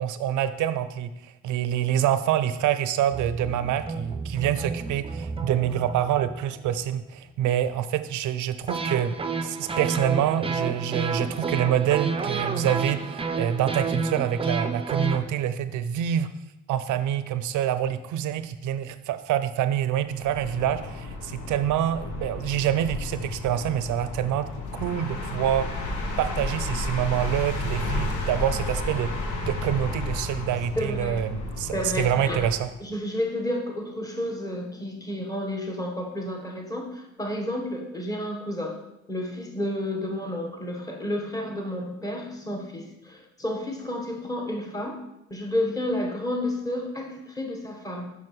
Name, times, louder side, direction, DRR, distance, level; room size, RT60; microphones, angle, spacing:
voice 1, 0.0-9.2 9.4-16.3 16.7-24.5 24.8-25.7 26.2-29.1 29.5-32.7, right 10 dB, 80° right, 12 dB, 0.5 m, -26 dB
sound 1, 3.1-7.0 8.7-15.2, right 4 dB, 20° right, 0.5 m, -30 dB
sound 2, 20.1-32.8, left 2 dB, 80° left, 1.1 m, -32 dB
voice 2, 30.8-31.2 31.7-32.5 32.8-38.8 39.1-45.0 45.3-48.1, left 1 dB, 10° left, 1 dB, 1.2 m, -31 dB
7.5 x 5.6 x 3.1 m, 0.92 s
cardioid pair, 90°, 30 cm